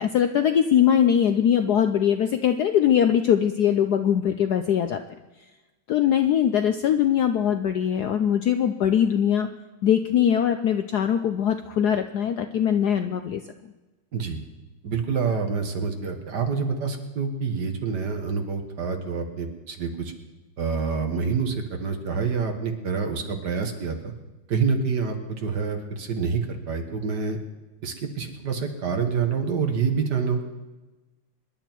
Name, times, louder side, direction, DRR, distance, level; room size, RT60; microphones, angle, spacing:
voice 1, 0.0-5.0 5.9-9.5 9.8-13.4, left 9 dB, 70° left, 8 dB, 1.0 m, -21 dB
voice 2, 14.1-14.4 14.8-20.1 20.6-24.1 24.5-27.4 27.8-30.4, right 5 dB, 55° right, 5 dB, 2.0 m, -27 dB
25.5 x 11.5 x 4.6 m, 1.1 s
omnidirectional pair, 2.3 m